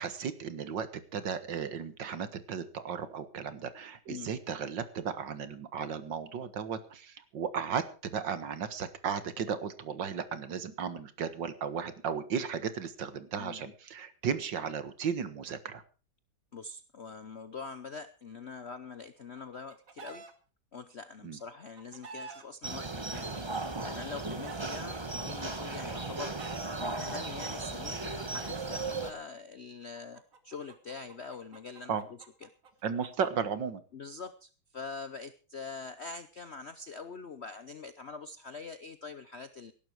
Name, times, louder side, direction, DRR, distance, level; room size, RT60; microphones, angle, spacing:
voice 1, 0.0-15.8 21.2-21.4 31.9-32.0 32.8-33.8, right 7 dB, 65° right, 12 dB, 2.0 m, -35 dB
voice 2, 13.4-13.7 16.5-20.2 20.7-23.4 23.8-26.3 26.8-32.0 32.4-32.5 33.9-39.7, left 4 dB, 55° left, 12 dB, 0.7 m, -44 dB
Chicken rooster, 19.2-20.3 21.4-22.4 23.4-24.8 25.7-26.8 27.8-28.8 30.0-33.3, right 5 dB, 45° right, 2.0 m, -48 dB
sound 1, 22.6-29.1, right 3 dB, 20° right, 0.9 m, -36 dB
17.5 x 11.5 x 4.7 m, 0.36 s
omnidirectional pair, 2.1 m